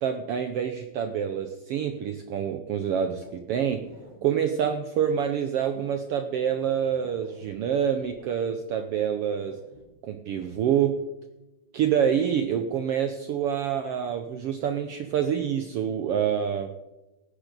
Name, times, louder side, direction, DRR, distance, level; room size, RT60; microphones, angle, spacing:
voice 1, 0.0-3.8 4.2-9.6 10.0-11.0 11.7-16.7, right 8 dB, 75° right, 7 dB, 1.3 m, -27 dB
sound 1, 2.9-4.2 6.2-8.5 9.3-9.8 10.4-10.5, right 2 dB, 35° right, 2.8 m, -51 dB
18.0 x 9.8 x 4.0 m, 1.0 s
omnidirectional pair, 3.5 m